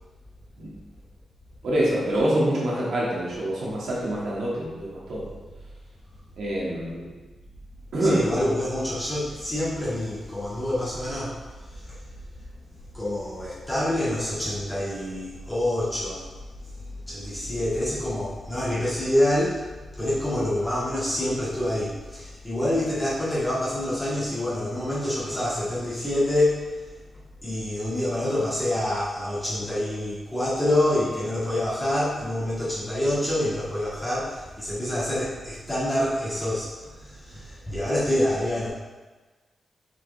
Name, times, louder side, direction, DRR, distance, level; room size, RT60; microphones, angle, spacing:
voice 1, 1.6-5.3 6.4-7.1 7.9-8.2, right 1 dB, 85° right, -6 dB, 2.0 m, -25 dB
voice 2, 8.0-12.0 12.9-16.3 16.8-19.7 20.0-26.7 27.4-38.7, left 1 dB, 10° left, -10 dB, 1.8 m, -27 dB
5.9 x 4.9 x 3.4 m, 1.3 s
wide cardioid pair, 140°, 0 cm